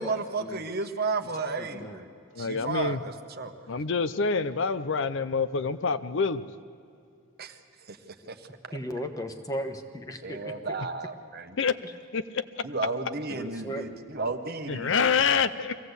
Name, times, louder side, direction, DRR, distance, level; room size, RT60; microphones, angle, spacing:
voice 1, 0.0-2.1 2.4-3.5 7.4-7.6 7.9-8.0 8.3-8.5 10.2-11.6 12.6-15.1, right 3 dB, 45° right, 7 dB, 1.1 m, -33 dB
voice 2, 1.6-2.0 8.7-10.5 11.8-11.9 13.3-14.0, equal, 15° left, 6 dB, 1.2 m, -36 dB
voice 3, 2.3-3.0 3.7-6.4 11.6-11.7 12.1-12.4 14.7-15.7, left 5 dB, 55° left, 12 dB, 0.6 m, -26 dB
23.5 x 16.0 x 8.1 m, 2.4 s
head